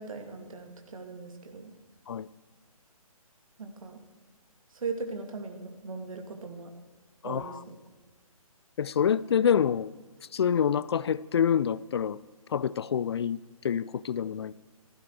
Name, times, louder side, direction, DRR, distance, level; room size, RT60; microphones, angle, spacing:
voice 1, 0.0-1.7 3.6-4.0 4.7-6.7 7.2-7.8, right 4 dB, 65° right, 4 dB, 2.7 m, -39 dB
voice 2, 7.2-7.6 8.8-9.9 10.3-12.2 12.5-13.4 13.6-14.5, left 8 dB, 45° left, 20 dB, 0.4 m, -26 dB
17.0 x 14.5 x 4.9 m, 1.4 s
figure-of-eight pair, 145°, 19 cm